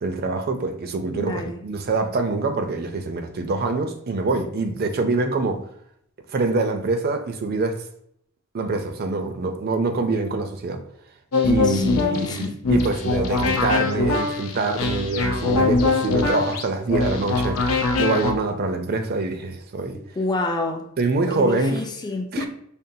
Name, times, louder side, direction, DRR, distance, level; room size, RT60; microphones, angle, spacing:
voice 1, 0.0-5.6 6.3-7.8 8.5-10.8 11.5-20.0 21.0-21.8 22.3-22.5, right 3 dB, 45° right, 0.4 m, -25 dB
voice 2, 1.1-1.6 11.6-12.6 19.9-20.9 21.4-22.5, left 2 dB, 20° left, 0.3 m, -29 dB
sound 1, 11.3-18.3, left 3 dB, 80° left, 0.6 m, -22 dB
5.2 x 2.2 x 2.7 m
head